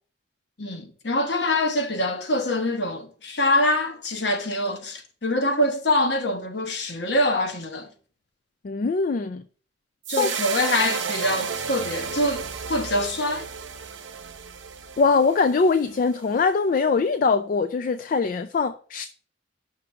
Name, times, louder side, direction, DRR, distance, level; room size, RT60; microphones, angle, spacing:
voice 1, 0.6-7.9 10.1-13.5, left 1 dB, 60° left, 1.1 m, -24 dB
voice 2, 8.6-9.4 10.2-10.4 15.0-19.1, left 4 dB, 45° left, 0.3 m, -22 dB
sound 1, 10.0-16.4, right 7 dB, 80° right, 0.7 m, -33 dB
5.9 x 3.7 x 5.7 m
head